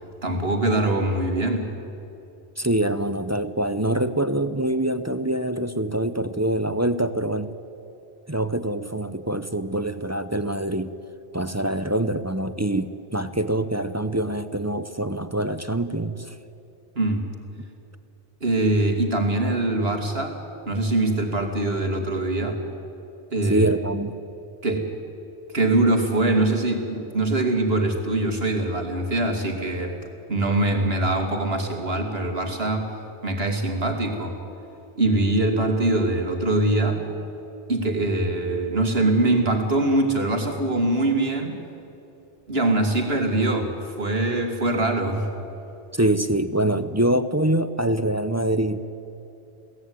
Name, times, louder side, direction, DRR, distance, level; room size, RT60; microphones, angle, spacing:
voice 1, 0.2-1.7 16.9-17.2 18.4-20.4 20.7-22.6 23.3-23.7 24.6-24.9 25.5-30.0 30.3-32.9 33.2-34.4 35.0-37.1 37.7-41.6 42.5-45.3, right 2 dB, 60° right, 4 dB, 2.9 m, -23 dB
voice 2, 2.6-7.5 8.3-10.9 11.3-16.4 23.5-24.2 45.9-49.0, right 1 dB, 15° right, 12 dB, 0.6 m, -25 dB
22.5 x 17.5 x 9.7 m, 2.8 s
omnidirectional pair, 1.1 m